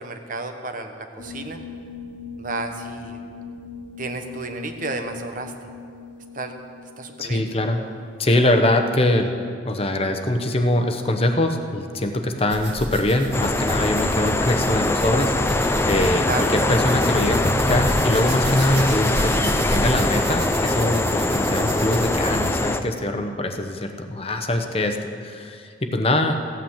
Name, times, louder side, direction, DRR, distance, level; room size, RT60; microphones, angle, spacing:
voice 1, 0.0-1.6 2.4-3.2 4.0-5.5 6.3-6.5 7.0-7.4 15.7-15.9 16.2-16.8, right 3 dB, 50° right, 6 dB, 1.2 m, -32 dB
sound 1, 1.2-8.7, left 5 dB, 90° left, 0.9 m, -40 dB
voice 2, 7.2-7.8 8.2-9.3 9.7-16.3 16.5-26.4, left 1 dB, 35° left, 5 dB, 0.9 m, -23 dB
sound 2, 12.5-22.7, right 1 dB, 65° right, 2.2 m, -31 dB
sound 3, 13.3-22.8, left 2 dB, 15° left, 0.5 m, -22 dB
15.5 x 9.0 x 7.3 m, 2.2 s
head